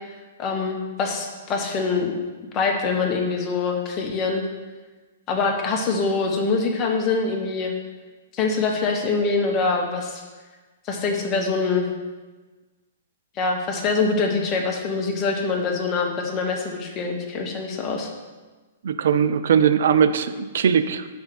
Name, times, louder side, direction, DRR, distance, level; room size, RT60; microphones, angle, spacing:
voice 1, 0.4-2.1 2.5-4.4 5.3-7.7 8.3-10.2 10.9-11.9 13.4-18.1, left 4 dB, 30° left, 1 dB, 1.1 m, -24 dB
voice 2, 18.8-21.1, right 7 dB, 60° right, 11 dB, 0.4 m, -20 dB
5.6 x 4.4 x 5.3 m, 1.3 s
figure-of-eight pair, 110°, 0 cm